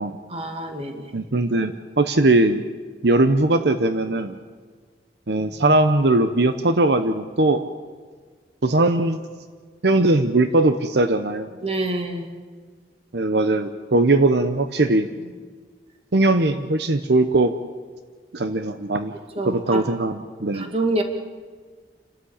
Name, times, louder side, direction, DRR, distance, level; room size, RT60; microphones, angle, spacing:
voice 1, 0.3-1.1 5.4-5.8 11.6-12.3 19.4-19.8 20.5-21.0, right 2 dB, 35° right, 4 dB, 2.1 m, -27 dB
voice 2, 1.1-2.6 3.0-4.3 5.3-7.6 8.6-9.2 9.8-11.5 13.1-15.1 16.1-17.5 18.3-19.1 19.4-20.7, right 2 dB, 70° right, 9 dB, 0.9 m, -20 dB
30.0 x 13.0 x 8.7 m, 1.6 s
head